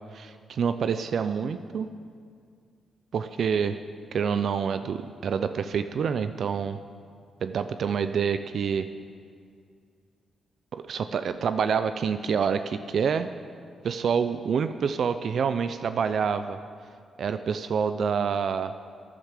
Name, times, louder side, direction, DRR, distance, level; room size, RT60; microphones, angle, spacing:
voice 1, 0.1-1.9 3.1-3.8 4.1-6.8 7.4-8.9 10.7-13.3 13.8-16.6 17.2-18.7, right 6 dB, 65° right, 10 dB, 0.5 m, -27 dB
11.5 x 10.0 x 7.3 m, 2.2 s
cardioid pair, 65°, 0 cm